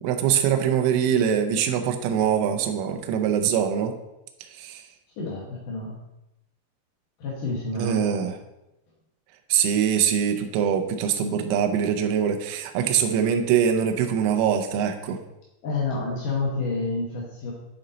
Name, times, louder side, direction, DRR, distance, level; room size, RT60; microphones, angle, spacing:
voice 1, 0.0-3.9 4.5-4.8 7.8-8.4 9.5-15.2, right 8 dB, 85° right, 5 dB, 3.2 m, -23 dB
voice 2, 5.2-6.0 7.2-8.3 15.6-17.5, left 3 dB, 85° left, -3 dB, 1.8 m, -29 dB
10.5 x 4.2 x 3.9 m, 0.93 s
omnidirectional pair, 5.6 m